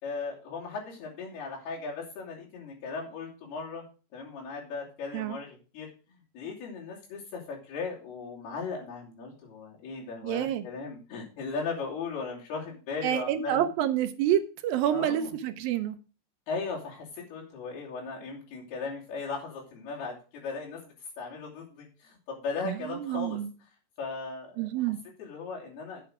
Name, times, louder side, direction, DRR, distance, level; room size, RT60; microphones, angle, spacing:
voice 1, 0.0-3.8 4.1-13.7 14.9-15.3 16.5-23.4 24.0-24.9 25.2-26.1, left 4 dB, 80° left, 4.8 m, -37 dB
voice 2, 10.2-10.6 13.0-16.0 22.6-23.5 24.6-25.0, right 11 dB, 80° right, 2.3 m, -28 dB
8.8 x 8.1 x 4.9 m
omnidirectional pair, 4.5 m